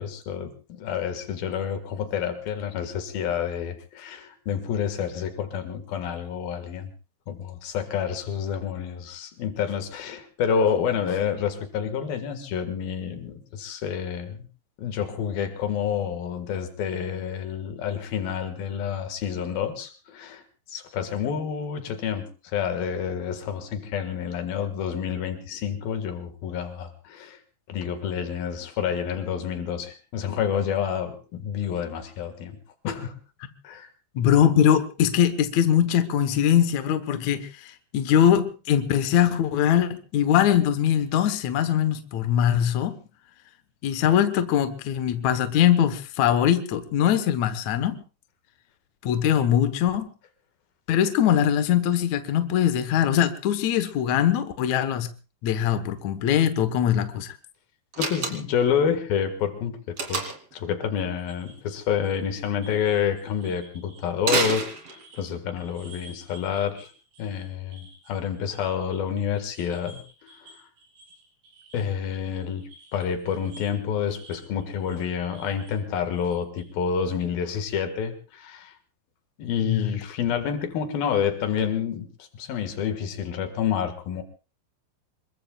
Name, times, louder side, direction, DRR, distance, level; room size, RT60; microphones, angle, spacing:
voice 1, 0.0-6.9 7.3-14.5 14.8-20.4 20.7-27.4 27.7-32.6 32.8-33.2 33.6-33.9 58.0-60.2 60.5-66.9 67.2-70.5 71.7-78.7 79.4-82.1 82.4-84.2, left 7 dB, 60° left, 8 dB, 3.2 m, -28 dB
voice 2, 34.1-42.9 43.8-48.0 49.0-50.1 50.9-55.1 55.4-57.3 79.6-79.9, left 10 dB, 85° left, 9 dB, 1.6 m, -22 dB
Slam, 57.9-58.7 60.0-60.5 64.2-65.3, right 4 dB, 35° right, 3.1 m, -28 dB
sound 1, 61.0-65.3 65.5-69.0 69.3-76.7, right 1 dB, 80° right, 10.5 m, -53 dB
26.5 x 22.0 x 2.4 m, 0.33 s
omnidirectional pair, 5.3 m